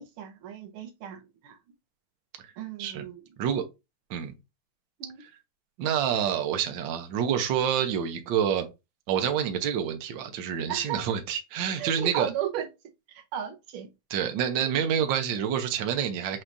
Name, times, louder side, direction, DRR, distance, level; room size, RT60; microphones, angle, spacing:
voice 1, 0.0-1.6 2.6-3.2 5.0-5.2 10.7-11.0 11.8-12.7 13.1-13.9, right 9 dB, 90° right, 1.7 m, -35 dB
voice 2, 5.8-8.7 9.1-12.3 14.1-16.4, right 8 dB, 70° right, 1.4 m, -27 dB
6.0 x 3.2 x 2.6 m
omnidirectional pair, 2.3 m